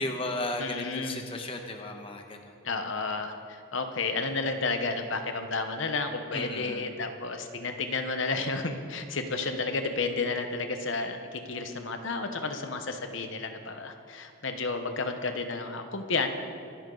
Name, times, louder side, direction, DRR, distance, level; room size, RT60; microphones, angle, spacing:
voice 1, 0.0-2.6 6.3-6.8, left 1 dB, 25° left, 3 dB, 1.1 m, -34 dB
voice 2, 0.6-1.2 2.6-16.3, left 3 dB, 65° left, 6 dB, 1.1 m, -32 dB
25.5 x 10.5 x 4.0 m, 2.3 s
head